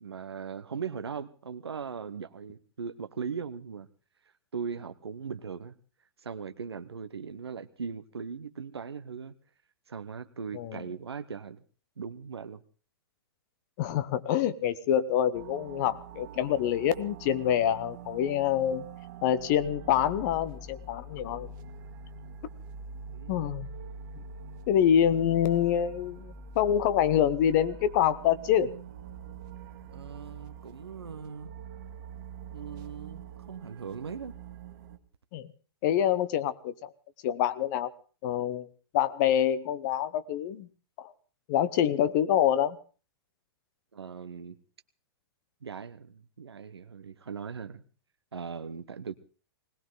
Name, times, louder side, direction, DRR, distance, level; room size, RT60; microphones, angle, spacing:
voice 1, 0.0-3.9 4.5-5.8 6.2-9.4 9.9-11.6 12.0-12.6 23.1-23.5 29.9-31.5 32.5-34.4 43.9-44.6 45.6-47.8 48.3-49.2, right 6 dB, 90° right, 9 dB, 0.9 m, -39 dB
voice 2, 13.8-18.8 19.2-21.5 23.3-23.7 24.7-28.7 35.3-35.5 35.8-36.9 37.2-37.9 38.2-38.7 38.9-40.7 41.0-41.1 41.5-42.8, left 10 dB, 45° left, 15 dB, 1.0 m, -26 dB
sound 1, 15.3-35.0, right 5 dB, 50° right, 1.8 m, -45 dB
20.5 x 18.5 x 3.9 m, 0.37 s
hypercardioid pair, 120°, 13 cm